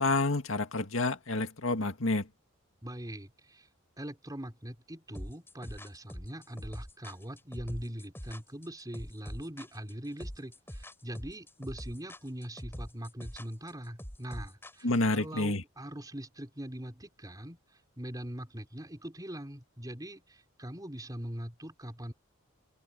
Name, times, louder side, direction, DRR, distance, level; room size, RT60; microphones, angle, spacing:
voice 1, 0.0-2.3 14.8-15.6, left 2 dB, 70° left, 2.0 m, -29 dB
voice 2, 2.8-3.7 4.0-17.6 18.0-22.1, equal, 20° right, 4.2 m, -42 dB
sound 1, 5.1-15.2, equal, 10° left, 5.3 m, -43 dB
open air
head